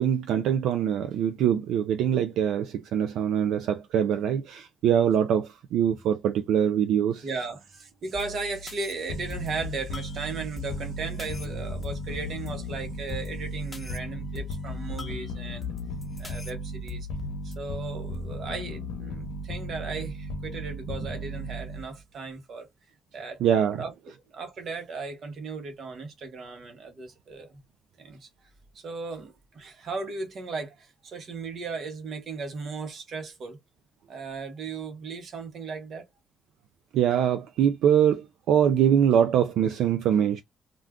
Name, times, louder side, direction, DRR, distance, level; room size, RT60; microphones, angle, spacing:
voice 1, 0.0-7.2 23.4-23.8 36.9-40.4, right 9 dB, 85° right, 0.4 m, -23 dB
voice 2, 7.2-15.7 16.2-17.1 17.4-22.7 23.1-23.4 23.7-23.9 24.3-27.6 28.0-28.3 28.7-33.6 34.1-36.1, right 4 dB, 60° right, 1.0 m, -36 dB
sound 1, 8.1-18.2, left 6 dB, 25° left, 0.7 m, -42 dB
sound 2, 9.1-22.0, equal, 90° left, 0.7 m, -36 dB
2.4 x 2.3 x 3.5 m
cardioid pair, 90°, 0 cm